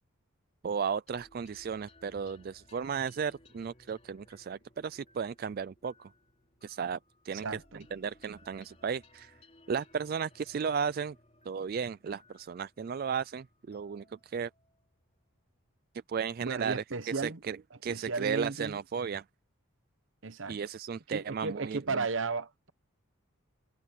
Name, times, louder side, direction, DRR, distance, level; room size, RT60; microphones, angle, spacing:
voice 1, 0.6-6.1 6.6-7.0 7.2-7.5 7.7-9.3 9.7-11.2 11.5-14.5 16.1-16.8 17.1-17.6 17.8-19.2 20.5-22.0, right 6 dB, 45° right, 0.3 m, -34 dB
sound 1, 1.1-15.8, left 2 dB, 30° left, 3.8 m, -62 dB
voice 2, 7.3-7.9 16.4-17.4 17.9-18.8 20.2-20.6 21.1-22.7, right 4 dB, 60° right, 0.9 m, -34 dB
head